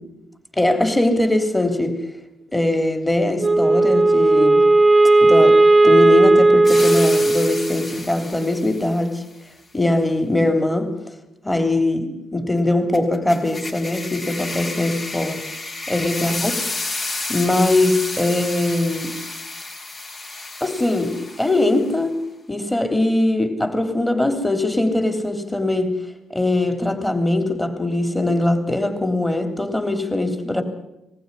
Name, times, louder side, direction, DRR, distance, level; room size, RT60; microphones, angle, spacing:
voice 1, 0.6-2.0 2.5-4.7 5.2-9.2 9.7-10.9 11.4-15.4 15.9-16.5 17.3-19.1 20.6-22.2 22.5-25.9 26.3-30.6, left 2 dB, 10° left, 7 dB, 3.4 m, -21 dB
Wind instrument woodwind instrument, 3.4-7.8, right 2 dB, 25° right, 1.1 m, -14 dB
sound 1, 6.6-9.0 12.9-21.9, left 3 dB, 40° left, 5.7 m, -31 dB
21.0 x 15.0 x 10.0 m, 0.90 s
cardioid pair, 90°, 0 cm